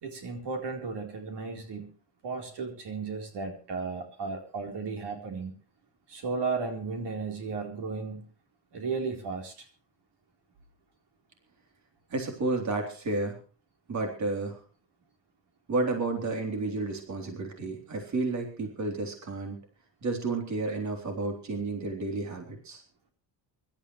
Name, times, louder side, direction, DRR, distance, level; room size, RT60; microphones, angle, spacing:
voice 1, 0.0-1.9 2.2-5.5 6.1-8.3 8.7-9.5, right 4 dB, 70° right, 3 dB, 4.1 m, -34 dB
voice 2, 12.1-13.4 13.9-14.6 15.7-19.6 20.0-22.8, right 3 dB, 40° right, 3 dB, 3.8 m, -31 dB
25.0 x 13.0 x 3.2 m, 0.38 s
cardioid pair, 150°, 43 cm